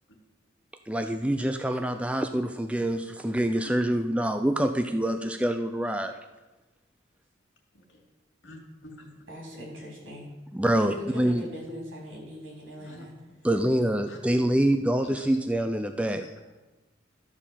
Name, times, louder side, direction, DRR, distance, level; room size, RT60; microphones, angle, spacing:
voice 1, 0.9-6.2 10.5-11.4 13.4-16.3, right 1 dB, 5° right, 7 dB, 0.3 m, -26 dB
voice 2, 8.4-9.1 12.8-13.1 14.1-14.2 15.0-15.3 16.2-16.4, left 1 dB, 75° left, 1 dB, 2.3 m, -47 dB
voice 3, 9.3-10.3 10.8-13.1, equal, 85° right, -2 dB, 3.7 m, -40 dB
12.5 x 4.5 x 7.3 m, 1.1 s
head